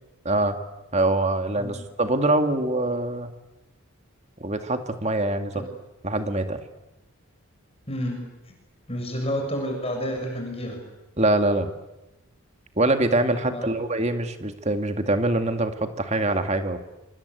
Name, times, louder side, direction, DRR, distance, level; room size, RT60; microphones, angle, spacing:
voice 1, 0.2-0.6 0.9-3.3 4.4-5.5 6.0-6.6 11.2-11.7 12.8-16.9, right 2 dB, 30° right, 7 dB, 2.1 m, -24 dB
voice 2, 7.9-8.2 8.9-10.9 13.4-13.7, equal, 25° left, 3 dB, 6.8 m, -30 dB
27.0 x 25.0 x 8.4 m, 1.0 s
head